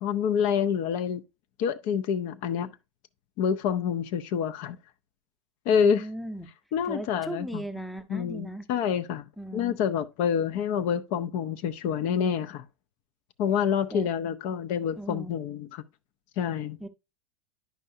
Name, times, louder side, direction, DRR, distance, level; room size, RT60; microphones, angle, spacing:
voice 1, 0.0-1.2 1.6-2.7 3.4-4.8 5.7-6.0 6.7-7.6 8.1-9.2 9.5-12.6 13.4-15.8 16.4-16.8, left 7 dB, 50° left, 0.7 m, -27 dB
voice 2, 5.7-6.5 6.8-8.6 9.4-9.8 13.9-14.1 15.0-15.4 16.8-16.9, right 1 dB, ahead, 0.8 m, -37 dB
10.5 x 5.4 x 2.6 m
hypercardioid pair, 90°, 16 cm